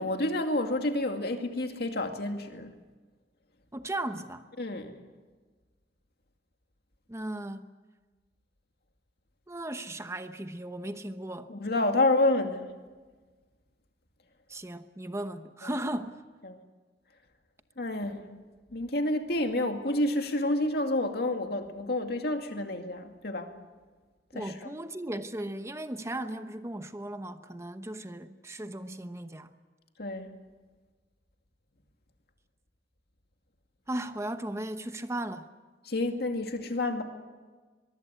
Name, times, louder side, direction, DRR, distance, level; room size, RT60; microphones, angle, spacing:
voice 1, 0.0-2.7 4.6-4.9 11.5-12.7 16.5-16.6 17.8-18.2 18.7-23.5 24.3-24.5 30.0-30.3 35.9-37.0, left 2 dB, 60° left, 2.4 m, -29 dB
voice 2, 3.7-4.5 7.1-7.7 9.5-11.5 14.5-16.2 24.3-29.5 33.9-35.5, right 1 dB, 15° right, 0.9 m, -36 dB
23.0 x 23.0 x 8.2 m
head